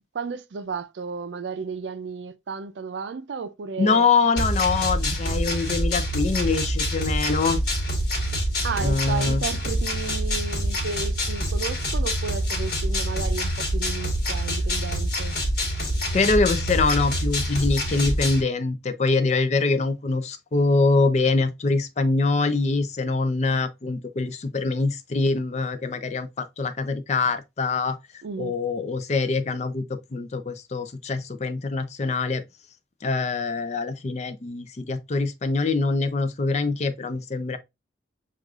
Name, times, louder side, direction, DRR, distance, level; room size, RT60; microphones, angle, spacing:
voice 1, 0.1-4.1 8.6-15.4 28.2-28.5, right 5 dB, 80° right, 0.4 m, -33 dB
voice 2, 3.8-7.6 8.8-9.4 16.1-28.0 28.4-32.4 33.0-37.6, left 3 dB, 40° left, 0.4 m, -24 dB
sound 1, 4.4-18.4, equal, 55° left, 1.4 m, -26 dB
6.2 x 2.4 x 2.3 m
head